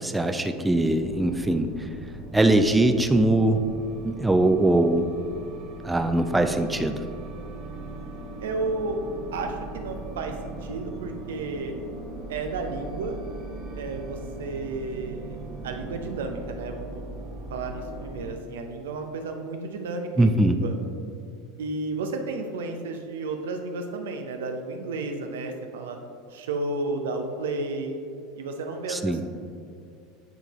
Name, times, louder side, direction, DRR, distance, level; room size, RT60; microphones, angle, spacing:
voice 1, 0.0-1.7 2.3-3.6 4.0-5.1 5.8-7.0 20.2-20.5 28.9-29.2, right 1 dB, 10° right, 7 dB, 0.4 m, -21 dB
sound 1, 0.9-18.3, right 2 dB, 60° right, 1.1 m, -39 dB
voice 2, 8.4-9.0 9.3-11.7 12.3-13.2 13.7-15.4 15.6-17.0 17.5-20.7 21.6-26.0 26.3-28.0 28.4-29.2, right 3 dB, 80° right, 4 dB, 0.6 m, -32 dB
8.9 x 3.8 x 3.0 m, 2.4 s
hypercardioid pair, 85°, 0 cm